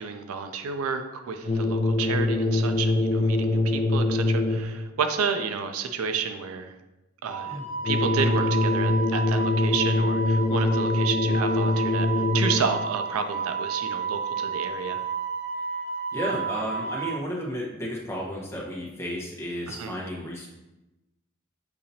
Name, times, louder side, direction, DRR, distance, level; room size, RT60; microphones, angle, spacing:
voice 1, 0.0-6.7 7.2-15.0 19.7-20.0, right 5 dB, 90° right, 7 dB, 0.4 m, -31 dB
sound 1, 1.4-4.9 7.8-12.9, left 2 dB, 35° left, 0.3 m, -24 dB
Wind instrument woodwind instrument, 7.2-17.1, right 5 dB, 65° right, 1.3 m, -31 dB
voice 2, 16.1-20.5, equal, 15° left, -4 dB, 1.0 m, -33 dB
6.6 x 2.8 x 2.7 m, 1.0 s
head